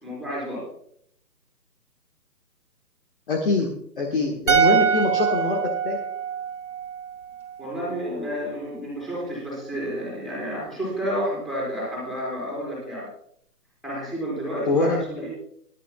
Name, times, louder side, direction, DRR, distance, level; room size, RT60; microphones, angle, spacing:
voice 1, 0.0-0.6 7.6-13.1 13.8-15.3, equal, ahead, -7 dB, 4.4 m, -30 dB
voice 2, 3.3-3.7 4.0-6.0 14.7-15.3, left 3 dB, 30° left, 0 dB, 1.5 m, -24 dB
sound 1, 4.5-7.7 7.9-8.1, right 7 dB, 50° right, 2.1 m, -24 dB
21.5 x 12.0 x 2.3 m, 0.65 s
hypercardioid pair, 170°, 50 cm